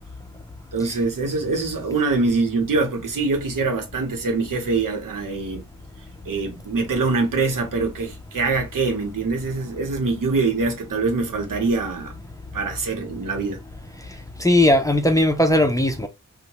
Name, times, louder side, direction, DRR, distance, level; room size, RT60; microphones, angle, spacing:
voice 1, 0.7-5.6 6.3-12.1 12.5-13.6, right 3 dB, 90° right, 0.9 m, -24 dB
voice 2, 14.4-16.1, left 1 dB, 10° left, 0.4 m, -18 dB
2.8 x 2.1 x 2.8 m
wide cardioid pair, 120°, 32 cm